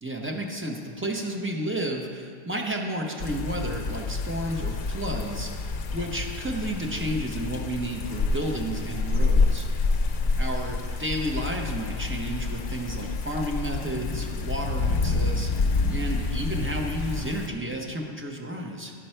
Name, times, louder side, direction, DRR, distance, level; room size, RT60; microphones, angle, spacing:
voice 1, 0.0-9.7 10.4-18.9, right 1 dB, 15° right, 0 dB, 0.7 m, -32 dB
sound 1, 3.2-17.5, left 3 dB, 60° left, 0.6 m, -28 dB
11.5 x 5.3 x 4.4 m, 2.1 s
omnidirectional pair, 1.1 m